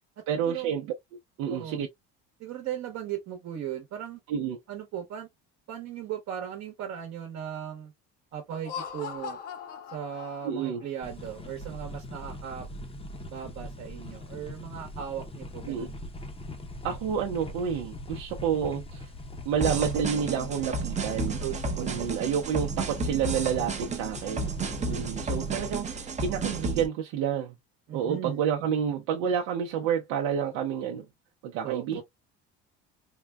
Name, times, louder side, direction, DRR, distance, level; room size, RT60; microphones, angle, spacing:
voice 1, 0.3-0.9 1.4-1.9 4.3-4.6 10.4-10.8 15.7-15.9 16.8-19.1 19.4-21.4 21.8-24.5 24.9-27.5 27.9-31.1 31.4-32.0, right 8 dB, 85° right, 0.7 m, -29 dB
voice 2, 1.5-1.8 2.4-4.2 4.7-5.3 5.7-7.9 8.3-9.4 9.9-12.7 13.3-16.0 21.4-22.4 23.6-24.0 27.9-28.4 31.6-32.0, right 10 dB, 55° right, 1.0 m, -37 dB
Laughter, 8.5-10.8, left 7 dB, 85° left, 1.2 m, -40 dB
sound 1, 11.0-25.8, left 1 dB, 20° left, 0.7 m, -42 dB
sound 2, 19.6-26.9, right 3 dB, 25° right, 0.7 m, -32 dB
3.7 x 2.2 x 2.2 m
cardioid pair, 120°, 30 cm